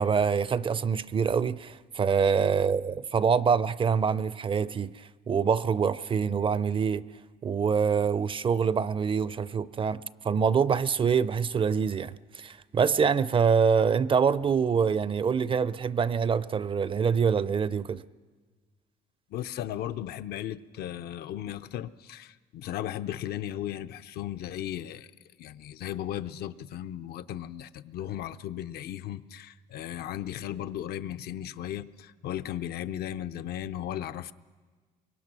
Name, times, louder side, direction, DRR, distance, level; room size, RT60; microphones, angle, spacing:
voice 1, 0.0-7.0 7.4-18.0, right 6 dB, 30° right, 0.5 m, -25 dB
voice 2, 19.3-25.1 25.4-34.3, left 11 dB, 70° left, 0.7 m, -36 dB
24.0 x 21.5 x 6.1 m
cardioid pair, 110°, 17 cm